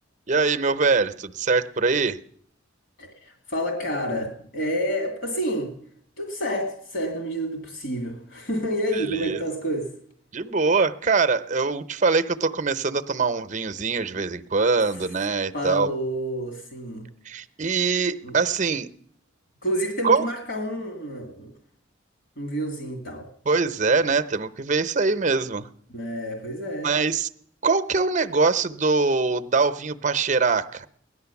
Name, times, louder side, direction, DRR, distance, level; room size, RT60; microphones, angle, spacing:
voice 1, 0.3-2.2 8.9-9.4 10.3-15.9 17.2-18.9 20.0-20.3 23.5-25.7 26.8-27.3 27.6-30.9, right 4 dB, 40° right, 12 dB, 0.7 m, -23 dB
voice 2, 3.0-5.7 6.2-9.9 15.5-17.1 18.2-18.4 19.6-21.5 22.4-23.3 25.9-26.9, equal, 65° left, 2 dB, 2.5 m, -29 dB
17.5 x 11.5 x 7.1 m, 0.65 s
head